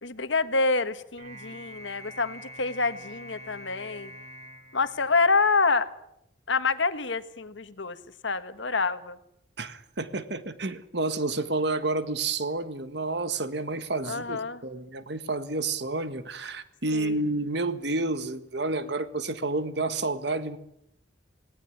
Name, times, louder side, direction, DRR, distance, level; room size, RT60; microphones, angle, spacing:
voice 1, 0.0-4.1 4.7-5.9 6.5-8.0 8.2-9.2 14.0-14.6 16.9-17.2, left 4 dB, 70° left, 1.6 m, -27 dB
sound 1, 1.2-5.7, equal, 35° right, 5.9 m, -45 dB
voice 2, 9.6-20.6, right 2 dB, 60° right, 1.6 m, -30 dB
18.5 x 18.5 x 10.0 m
head